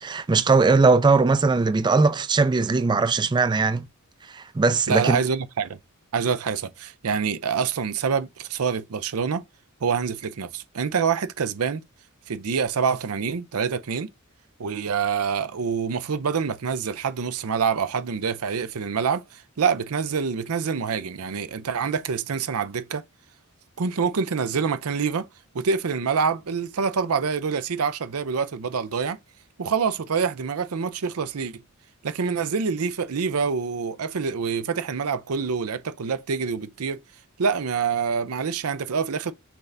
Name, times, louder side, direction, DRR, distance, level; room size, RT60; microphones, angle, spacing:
voice 1, 0.0-3.8 4.3-5.2, right 4 dB, 20° right, 0.3 m, -20 dB
voice 2, 4.9-5.8 6.1-9.4 9.8-11.8 12.3-14.1 14.6-23.0 23.8-25.3 25.5-29.2 29.6-31.6 32.0-37.0 37.4-39.3, right 6 dB, 90° right, 0.6 m, -26 dB
5.9 x 3.3 x 2.6 m
head